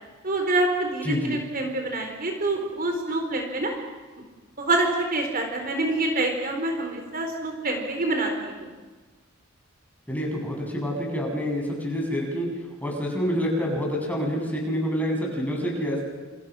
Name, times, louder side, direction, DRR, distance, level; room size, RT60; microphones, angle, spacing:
voice 1, 0.2-3.8 4.6-8.7, right 2 dB, 45° right, 3 dB, 4.3 m, -26 dB
voice 2, 1.0-1.4 10.1-12.5 12.8-16.0, equal, 10° left, -1 dB, 8.0 m, -27 dB
30.0 x 29.0 x 6.4 m, 1.3 s
head